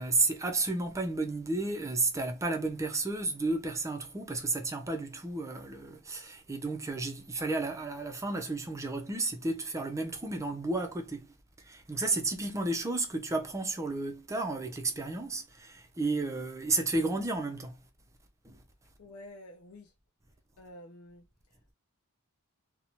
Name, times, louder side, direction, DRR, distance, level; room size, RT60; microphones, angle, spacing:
voice 1, 0.0-11.3 11.6-17.7 18.4-18.6, right 3 dB, 15° right, 0.4 m, -32 dB
voice 2, 19.0-19.9 20.6-21.3, left 1 dB, 70° left, 0.5 m, -49 dB
2.6 x 2.1 x 2.9 m
head